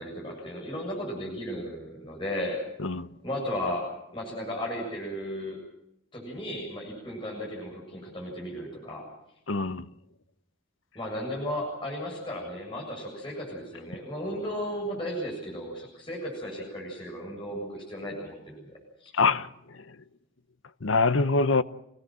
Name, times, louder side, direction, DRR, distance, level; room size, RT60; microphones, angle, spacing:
voice 1, 0.0-2.6 3.2-5.6 6.1-9.0 10.9-18.7 19.0-19.1, equal, 25° left, 7.5 m, -35 dB
voice 2, 2.8-3.1 9.5-9.9 19.1-20.0 20.8-21.6, left 4 dB, 75° left, 0.9 m, -25 dB
26.5 x 18.0 x 7.7 m
head